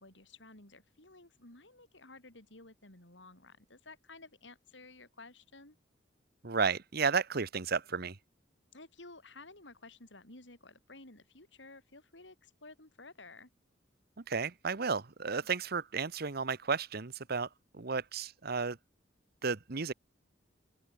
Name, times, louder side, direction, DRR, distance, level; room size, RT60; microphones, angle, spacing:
voice 1, 0.0-5.8 8.7-13.5, left 3 dB, 70° left, 5.7 m, -54 dB
voice 2, 6.4-8.2 14.3-17.5 17.7-18.8 19.4-19.9, right 5 dB, 55° right, 1.1 m, -33 dB
open air
head